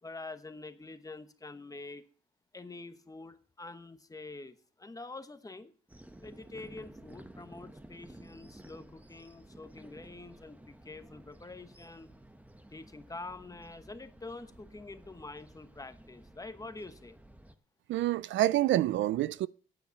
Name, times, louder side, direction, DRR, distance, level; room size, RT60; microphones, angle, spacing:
voice 1, 0.0-2.0 2.5-5.7 6.2-12.1 12.7-17.2, left 3 dB, 15° left, 1.1 m, -46 dB
sound 1, 5.9-17.6, right 1 dB, 5° right, 1.0 m, -54 dB
voice 2, 17.9-19.5, right 14 dB, 70° right, 0.4 m, -27 dB
9.4 x 8.0 x 7.0 m
cardioid pair, 90°, 20 cm